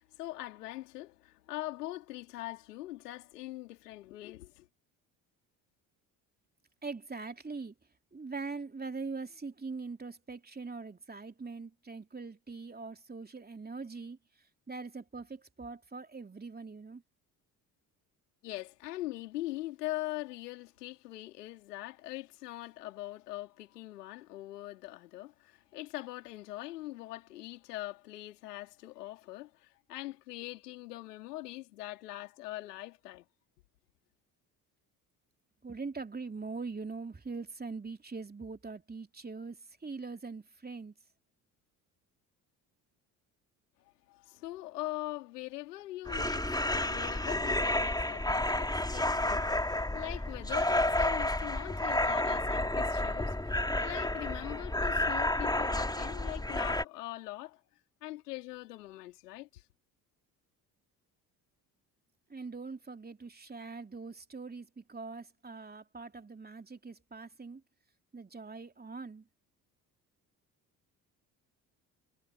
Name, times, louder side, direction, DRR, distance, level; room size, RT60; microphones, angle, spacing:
voice 1, 0.0-4.7 18.4-33.3 43.8-57.6 58.0-59.6, left 16 dB, 80° left, 4.0 m, -42 dB
voice 2, 6.8-7.7 8.1-14.2 14.7-17.0 35.6-40.9 62.3-67.6 68.1-69.3, right 4 dB, 20° right, 3.1 m, -42 dB
sound 1, 46.1-56.8, left 1 dB, 10° left, 2.8 m, -31 dB
figure-of-eight pair, 55°, 47 cm